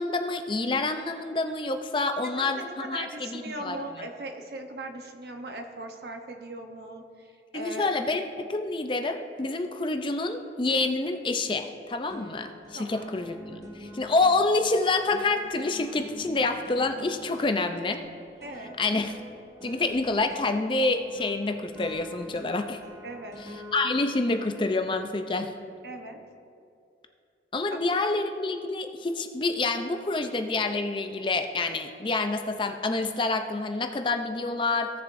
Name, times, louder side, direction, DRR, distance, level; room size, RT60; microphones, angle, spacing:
voice 1, 0.0-3.8 7.5-18.0 18.8-19.2 19.6-22.8 23.7-25.5 27.5-34.9, left 3 dB, 30° left, 6 dB, 0.5 m, -27 dB
voice 2, 2.4-7.9 12.7-13.1 17.6-17.7 18.4-18.8 23.0-23.4 25.8-26.2 27.9-28.0, right 1 dB, 65° right, 4 dB, 0.9 m, -39 dB
sound 1, 11.3-11.8 12.1-25.5, equal, 20° right, 1.4 m, -47 dB
17.0 x 6.9 x 2.6 m, 2.5 s
head